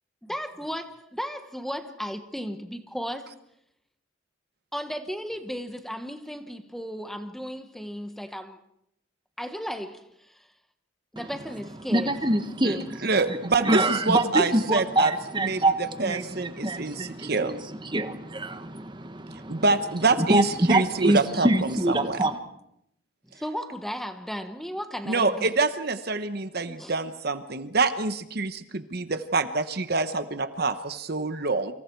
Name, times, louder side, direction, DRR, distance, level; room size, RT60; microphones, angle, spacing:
voice 1, 0.3-3.3 4.7-8.6 9.4-10.5 11.1-12.1 23.3-25.5 26.8-26.9, equal, ahead, 7 dB, 1.2 m, -35 dB
voice 2, 11.9-13.4 13.6-19.6 20.2-22.4, right 1 dB, 20° right, 9 dB, 1.4 m, -25 dB
voice 3, 13.0-15.1 15.4-15.6 16.0-17.5 19.5-22.2 25.1-31.7, right 3 dB, 50° right, 10 dB, 1.0 m, -26 dB
29.0 x 25.5 x 4.7 m, 0.77 s
head